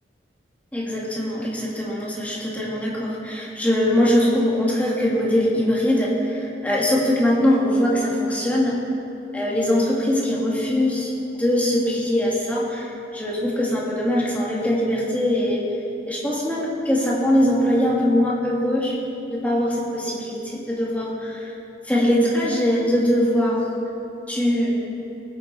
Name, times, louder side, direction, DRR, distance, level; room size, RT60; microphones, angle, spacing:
voice 1, 0.7-8.8 9.3-15.6 16.1-19.0 19.3-21.5 21.8-23.7 24.3-24.7, left 1 dB, 10° left, -5 dB, 2.2 m, -22 dB
19.5 x 9.6 x 4.5 m, 2.9 s
head